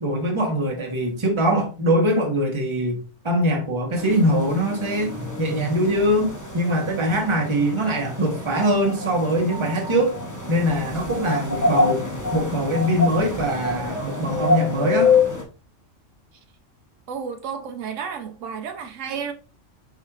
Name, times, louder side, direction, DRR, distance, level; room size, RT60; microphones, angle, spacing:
voice 1, 0.0-10.2 10.5-15.1, equal, 25° right, 1.0 m, -22 dB
sound 1, 3.9-15.4, left 3 dB, 20° left, 0.7 m, -26 dB
voice 2, 17.1-19.3, right 6 dB, 80° right, 1.0 m, -32 dB
4.7 x 4.3 x 2.3 m
omnidirectional pair, 1.3 m